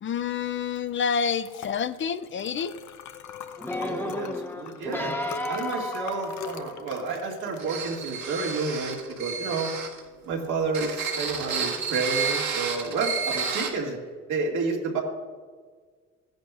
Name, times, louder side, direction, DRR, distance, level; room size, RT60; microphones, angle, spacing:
voice 1, 0.0-2.7, left 6 dB, 40° left, 13 dB, 0.4 m, -28 dB
Liquid, 0.7-10.9, left 7 dB, 75° left, 0.8 m, -43 dB
sound 1, 3.6-7.1 7.7-7.8, left 1 dB, 5° left, 0.7 m, -33 dB
voice 2, 3.8-5.2 5.5-9.7 10.2-14.0 14.3-15.0, right 4 dB, 85° right, -2 dB, 2.2 m, -30 dB
sound 2, 7.6-10.0 10.7-13.7, right 6 dB, 65° right, 1.8 m, -31 dB
14.5 x 10.5 x 2.5 m, 1.5 s
cardioid pair, 90°, 30 cm